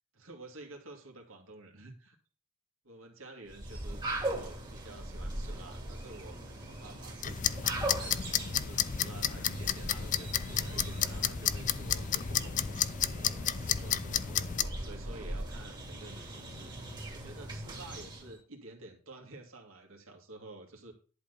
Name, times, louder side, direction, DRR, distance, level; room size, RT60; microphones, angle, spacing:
voice 1, 0.2-2.2 2.8-7.4 7.8-12.9 13.4-20.9, right 2 dB, 65° right, 2 dB, 2.3 m, -50 dB
sound 1, 3.5-18.4, right 1 dB, 20° right, 2.3 m, -40 dB
sound 2, 7.2-14.6, left 9 dB, 35° left, 0.5 m, -32 dB
11.0 x 4.5 x 6.7 m, 0.39 s
head